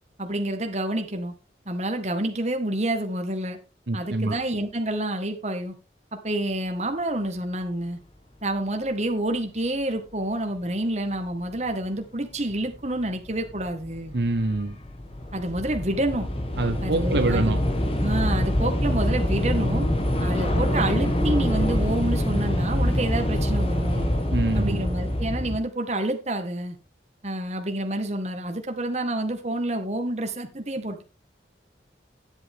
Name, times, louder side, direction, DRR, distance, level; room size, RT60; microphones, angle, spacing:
voice 1, 0.2-1.3 1.6-3.6 3.9-5.7 6.1-8.0 8.4-14.1 15.3-16.3 16.8-17.5 18.0-19.9 20.2-24.1 24.5-26.8 27.2-31.0, right 1 dB, 40° right, 1.7 m, -28 dB
voice 2, 3.9-4.3 14.1-14.7 16.6-17.6 24.3-24.8, right 2 dB, 70° right, 0.8 m, -25 dB
Train / Subway metro underground, 11.6-11.7 12.5-12.7 13.0-25.6, left 1 dB, 30° left, 1.6 m, -25 dB
11.0 x 8.0 x 3.6 m
head